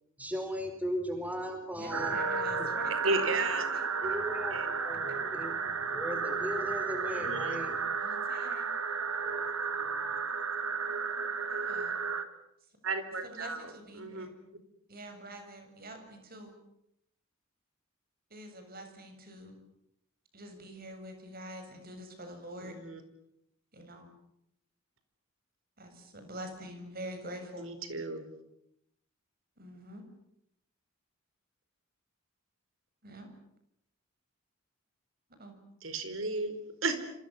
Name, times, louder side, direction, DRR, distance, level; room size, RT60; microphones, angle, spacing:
voice 1, 0.2-2.2 2.5-2.8 4.0-7.8 9.0-10.3, equal, 5° right, 5 dB, 4.7 m, -38 dB
voice 2, 1.8-3.9 5.1-5.2 7.9-8.7 11.5-12.0 13.2-14.3 14.9-16.5 18.3-19.6 20.3-22.8 23.7-24.1 25.8-27.7 29.6-30.0 33.0-33.3 35.4-35.6, right 1 dB, 45° right, 6 dB, 7.4 m, -45 dB
sound 1, 1.9-12.2, right 5 dB, 90° right, 2.6 m, -33 dB
voice 3, 3.0-3.6 4.0-4.2 4.5-4.7 7.0-7.6 12.8-13.6 14.0-14.3 22.6-23.0 27.6-28.2 35.8-37.0, right 3 dB, 70° right, 10 dB, 4.6 m, -34 dB
28.0 x 27.0 x 7.3 m, 0.77 s
head